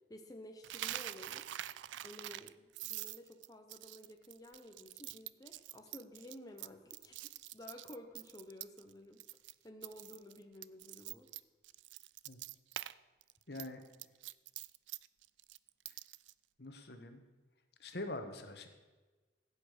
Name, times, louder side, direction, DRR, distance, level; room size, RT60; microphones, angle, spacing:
voice 1, 0.1-1.5 2.0-9.2 9.6-11.3, left 1 dB, 20° left, 3 dB, 0.7 m, -53 dB
Coin (dropping), 0.6-8.9 9.2-9.5 9.8-12.9 13.2-16.3, right 14 dB, 80° right, 0.3 m, -45 dB
voice 2, 13.5-13.8 16.6-17.2 17.8-18.7, left 2 dB, 60° left, 7 dB, 1.2 m, -44 dB
15.5 x 8.5 x 4.9 m, 1.3 s
head